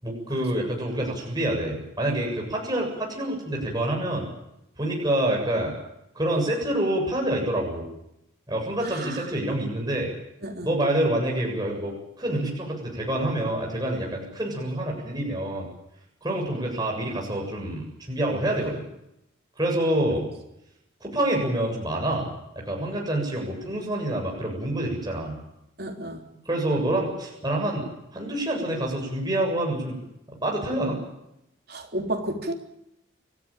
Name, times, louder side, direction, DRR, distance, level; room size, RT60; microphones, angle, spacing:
voice 1, 0.0-4.3 4.8-5.7 6.2-7.9 8.5-10.1 10.6-15.7 16.2-18.8 19.6-20.3 21.0-22.3 22.6-25.4 26.5-27.9 28.1-30.0 30.4-31.0, right 1 dB, 20° right, -1 dB, 7.5 m, -27 dB
voice 2, 8.8-9.3 10.4-10.7 25.8-26.2 31.7-32.5, right 1 dB, 50° right, 3 dB, 3.5 m, -32 dB
30.0 x 14.5 x 9.0 m, 0.83 s
head